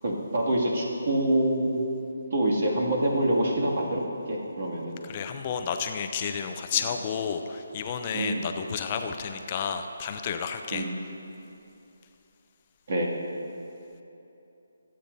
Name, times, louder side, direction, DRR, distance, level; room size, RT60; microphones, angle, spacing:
voice 1, 0.0-1.9 2.3-5.0 8.1-8.5 10.7-11.0 12.9-13.1, right 1 dB, 55° right, -3 dB, 2.4 m, -26 dB
voice 2, 5.1-10.9, left 7 dB, 30° left, 6 dB, 0.5 m, -31 dB
24.0 x 8.7 x 2.7 m, 2.9 s
figure-of-eight pair, 155°, 0 cm